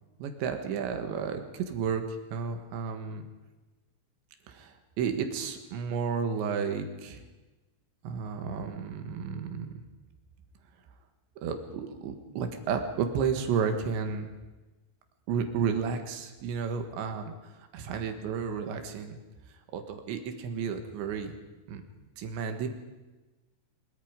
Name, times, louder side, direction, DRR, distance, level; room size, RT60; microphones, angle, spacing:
voice 1, 0.2-3.2 4.5-7.2 8.0-9.8 11.4-14.3 15.3-19.2 19.7-21.4 21.7-21.8 22.2-22.7, right 6 dB, 70° right, 6 dB, 3.7 m, -32 dB
23.5 x 22.0 x 5.3 m, 1.2 s
omnidirectional pair, 5.7 m